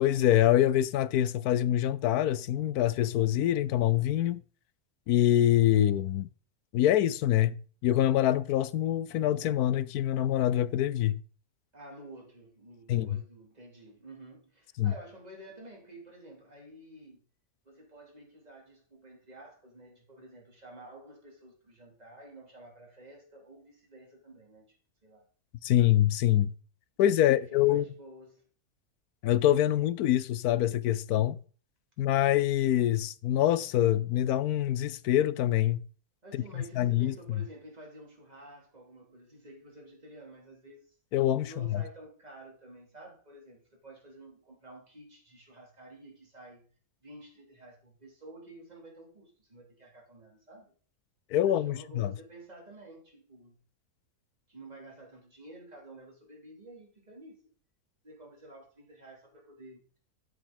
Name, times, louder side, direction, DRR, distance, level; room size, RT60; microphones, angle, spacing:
voice 1, 0.0-4.4 5.1-6.3 6.7-7.5 7.8-11.2 12.9-13.2 14.8-14.9 25.6-26.5 27.0-27.9 29.2-31.4 32.0-35.8 36.3-36.4 36.8-37.4 41.1-41.8 51.3-52.1, left 12 dB, 85° left, 1.1 m, -25 dB
voice 2, 11.7-17.2 17.6-25.3 27.2-28.5 36.2-40.9 41.4-46.7 47.0-50.7 51.4-53.6 54.5-57.5 58.0-59.9, right 1 dB, 25° right, 3.2 m, -51 dB
12.5 x 7.1 x 4.0 m
omnidirectional pair, 1.6 m